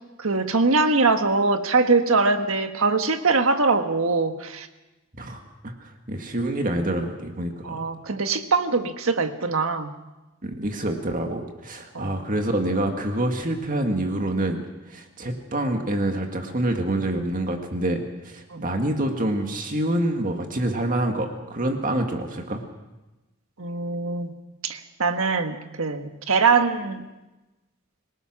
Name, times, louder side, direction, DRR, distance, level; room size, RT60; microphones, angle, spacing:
voice 1, 0.2-4.7 7.6-9.9 11.9-12.2 18.5-18.6 23.6-24.3 24.6-27.0, right 4 dB, 80° right, 7 dB, 1.5 m, -22 dB
voice 2, 5.2-7.9 10.4-14.6 14.9-22.6, right 1 dB, 40° right, 4 dB, 1.9 m, -27 dB
26.5 x 18.5 x 6.1 m, 1.1 s
head